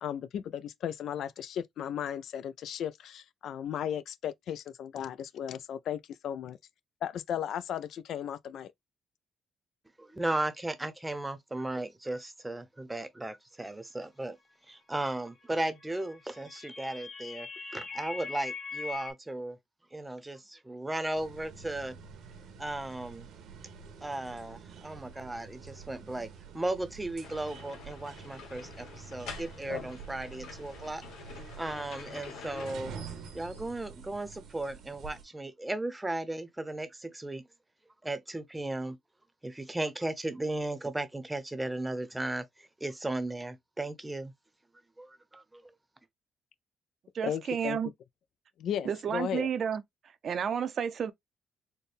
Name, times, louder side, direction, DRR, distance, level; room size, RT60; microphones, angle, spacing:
voice 1, 0.0-6.6 7.0-8.7 47.2-47.8 48.6-49.5, left 9 dB, 70° left, 0.3 m, -35 dB
voice 2, 10.0-14.4 14.7-19.6 19.9-22.0 22.6-23.3 24.0-26.3 26.5-31.0 31.6-32.9 33.3-37.4 38.0-39.0 39.4-44.3 45.0-45.6, right 2 dB, 15° right, 0.7 m, -36 dB
sound 1, 15.9-19.1, left 5 dB, 40° left, 1.7 m, -41 dB
sound 2, 21.1-35.2, right 6 dB, 80° right, 1.0 m, -48 dB
sound 3, 27.2-32.7, left 5 dB, 90° left, 1.3 m, -46 dB
voice 3, 47.1-47.9 48.9-49.8 50.2-51.1, right 7 dB, 55° right, 0.5 m, -31 dB
4.3 x 2.1 x 3.3 m
cardioid pair, 90°, 0 cm